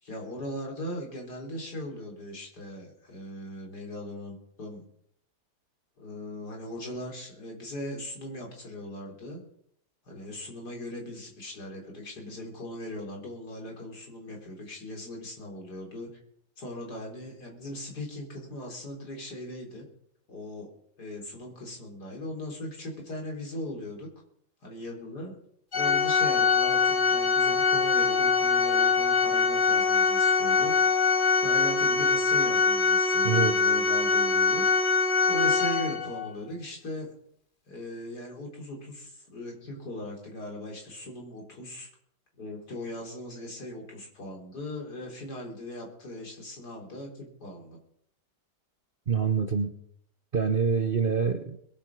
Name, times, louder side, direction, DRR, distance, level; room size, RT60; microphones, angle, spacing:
voice 1, 0.0-4.8 6.0-9.4 10.1-16.1 16.6-19.8 20.3-20.7 21.0-24.1 24.6-25.4 25.7-31.0 31.4-34.7 35.3-37.1 37.7-41.9 42.4-47.8, left 1 dB, 65° left, 0 dB, 4.3 m, -39 dB
Organ, 25.7-36.3, left 5 dB, 30° left, 1.4 m, -23 dB
voice 2, 49.1-49.7 50.3-51.6, right 6 dB, 40° right, 7 dB, 0.8 m, -25 dB
21.0 x 8.6 x 6.0 m, 0.68 s
omnidirectional pair, 1.8 m